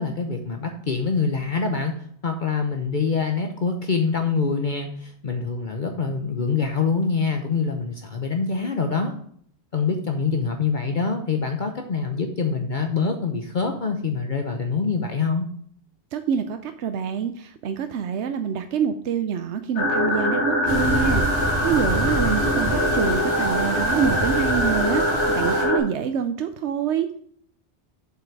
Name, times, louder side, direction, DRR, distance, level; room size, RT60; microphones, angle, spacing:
voice 1, 0.0-1.9 2.2-9.1 9.7-15.5, left 5 dB, 50° left, 4 dB, 0.9 m, -25 dB
voice 2, 16.1-27.2, right 7 dB, 90° right, 8 dB, 0.9 m, -26 dB
sound 1, 19.8-25.8, equal, 85° left, 1.8 m, -23 dB
sound 2, 20.7-25.6, right 1 dB, 45° right, 2.7 m, -29 dB
7.7 x 5.8 x 4.7 m, 0.62 s
omnidirectional pair, 1.1 m